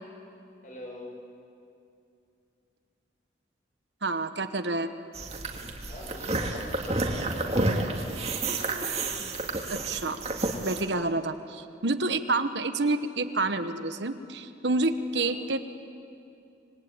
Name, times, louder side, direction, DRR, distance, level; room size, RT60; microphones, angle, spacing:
voice 1, 0.6-1.2 5.9-7.9 14.9-15.4, left 1 dB, 45° left, 0 dB, 5.8 m, -43 dB
voice 2, 4.0-4.9 9.7-10.2 10.6-15.6, right 2 dB, 75° right, 9 dB, 1.2 m, -28 dB
sound 1, 5.1-10.8, right 2 dB, 35° right, 2.2 m, -30 dB
26.0 x 22.0 x 8.9 m, 2.6 s
head